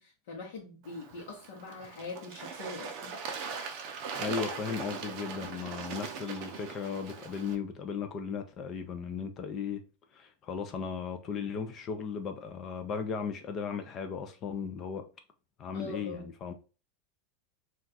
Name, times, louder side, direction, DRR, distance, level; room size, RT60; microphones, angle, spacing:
voice 1, 0.0-3.6 15.7-16.3, left 3 dB, 70° left, 0.8 m, -43 dB
Bird / Water, 0.8-7.6, right 5 dB, 50° right, 0.5 m, -40 dB
voice 2, 4.1-9.8 10.1-15.0 15.6-16.5, left 6 dB, 30° left, 0.4 m, -36 dB
2.3 x 2.3 x 3.9 m
supercardioid pair, 150°, 0 cm